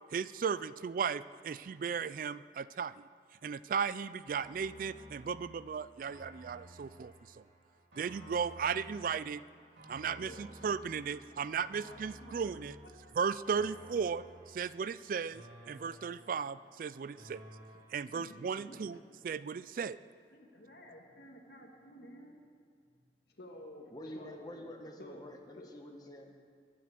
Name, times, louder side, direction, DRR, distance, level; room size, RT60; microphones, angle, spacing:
voice 1, 0.1-3.0 3.4-7.1 8.0-9.4 9.9-12.8 13.2-14.2 14.5-17.4 17.9-19.0 19.2-20.0, right 6 dB, 50° right, 17 dB, 0.3 m, -36 dB
sound 1, 4.3-17.9, equal, 85° right, 3.8 m, -55 dB
voice 2, 10.1-10.5 11.0-11.5 11.8-13.0 13.4-13.8 18.1-18.9 20.3-22.4 23.3-24.7 25.0-25.3 25.6-25.7, left 1 dB, 60° left, 1 dB, 2.4 m, -52 dB
voice 3, 23.9-26.3, left 1 dB, 20° left, 2 dB, 1.5 m, -47 dB
22.5 x 7.6 x 7.6 m, 2.2 s
head